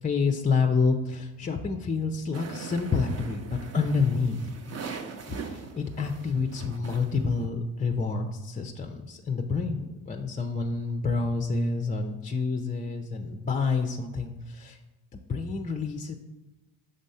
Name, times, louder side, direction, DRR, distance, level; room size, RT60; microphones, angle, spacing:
voice 1, 0.0-4.4 5.4-14.8 15.1-16.2, left 4 dB, 20° left, 5 dB, 0.4 m, -28 dB
sound 1, 2.3-7.4, right 5 dB, 35° right, 0.6 m, -41 dB
5.2 x 3.6 x 5.5 m, 1.1 s
supercardioid pair, 60°, 48 cm